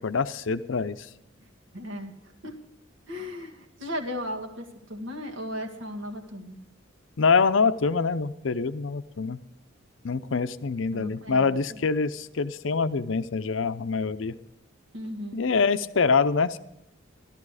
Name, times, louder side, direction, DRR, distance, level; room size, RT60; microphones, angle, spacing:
voice 1, 0.0-1.1 7.2-9.4 10.0-14.3 15.3-16.6, left 5 dB, 65° left, 12 dB, 0.6 m, -25 dB
voice 2, 1.7-2.1 2.4-2.6 3.1-6.6 10.9-11.8 14.9-15.4, left 1 dB, 65° right, 2 dB, 1.9 m, -36 dB
13.5 x 12.5 x 4.9 m, 0.86 s
head